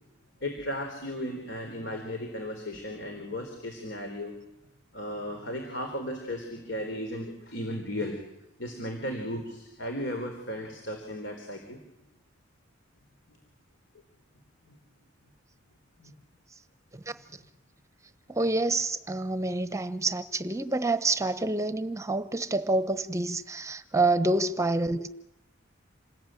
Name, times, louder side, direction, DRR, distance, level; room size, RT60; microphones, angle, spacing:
voice 1, 0.4-4.3 4.9-8.2 8.6-11.8 13.3-13.4 14.7-14.8 16.0-16.1, equal, 65° left, 4.1 m, -35 dB
voice 2, 18.3-25.1, right 2 dB, 15° right, 0.9 m, -27 dB
28.0 x 20.5 x 9.2 m
head